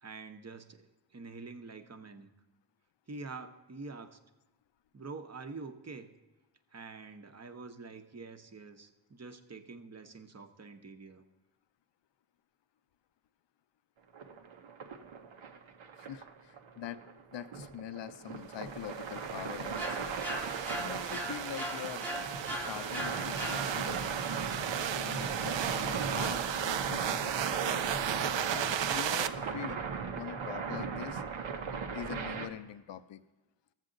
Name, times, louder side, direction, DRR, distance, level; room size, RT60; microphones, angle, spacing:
voice 1, 0.0-2.3 3.1-4.2 4.9-6.1 6.7-11.2, right 3 dB, 35° right, 7 dB, 0.9 m, -46 dB
sound 1, 14.1-32.5, right 5 dB, 85° right, 0.9 m, -38 dB
voice 2, 16.0-17.0 17.3-20.1 20.7-22.1 22.7-24.2 24.9-27.8 28.5-29.8 30.1-31.2 31.7-33.2, left 10 dB, 65° left, 12 dB, 0.6 m, -44 dB
sound 2, 18.8-29.3, right 9 dB, 70° right, 0.6 m, -36 dB
sound 3, 19.8-24.1, equal, 5° left, 0.9 m, -40 dB
13.5 x 7.4 x 3.9 m, 1.1 s
cardioid pair, 55°, 46 cm